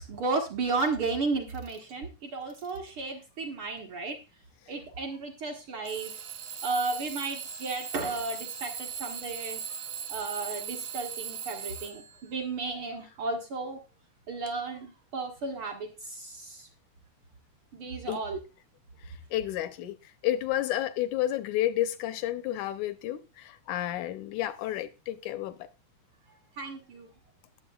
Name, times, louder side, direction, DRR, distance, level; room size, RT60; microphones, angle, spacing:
voice 1, 0.0-4.2 4.7-6.1 6.6-9.6 10.1-13.8 14.3-16.7 17.7-18.4 26.6-27.1, right 3 dB, 55° right, 1.6 m, -33 dB
Alarm / Clock, 0.8-1.0 1.5-1.9 2.5-2.9 3.8-3.9 5.8-12.2, right 8 dB, 85° right, 1.2 m, -39 dB
voice 2, 19.3-25.7, left 13 dB, 80° left, 2.0 m, -31 dB
19.0 x 7.8 x 2.3 m
omnidirectional pair, 3.6 m